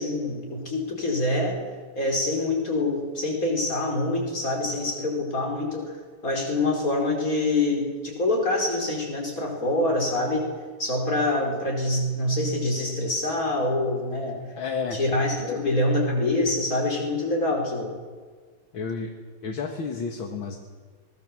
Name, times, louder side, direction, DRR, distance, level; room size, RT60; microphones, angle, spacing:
voice 1, 0.0-1.6 2.0-5.9 6.2-10.5 10.8-14.4 14.9-18.0, left 2 dB, 40° left, 0 dB, 5.2 m, -25 dB
voice 2, 14.6-15.0 15.4-15.6 18.7-19.1 19.4-20.6, left 5 dB, 65° left, 4 dB, 2.4 m, -31 dB
24.0 x 19.5 x 7.6 m, 1.5 s
omnidirectional pair, 2.4 m